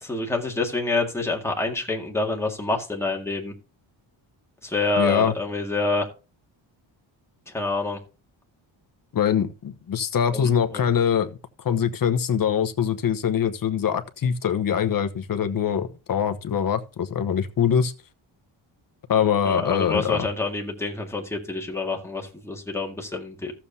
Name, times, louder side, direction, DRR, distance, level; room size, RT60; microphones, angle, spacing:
voice 1, 0.0-3.5 4.6-6.1 7.5-8.0 10.3-10.8 19.4-23.5, left 3 dB, 5° left, 1.9 m, -27 dB
voice 2, 5.0-5.4 9.1-17.9 19.1-20.3, left 8 dB, 45° left, 1.0 m, -23 dB
14.5 x 7.2 x 2.7 m
wide cardioid pair, 145°, 49 cm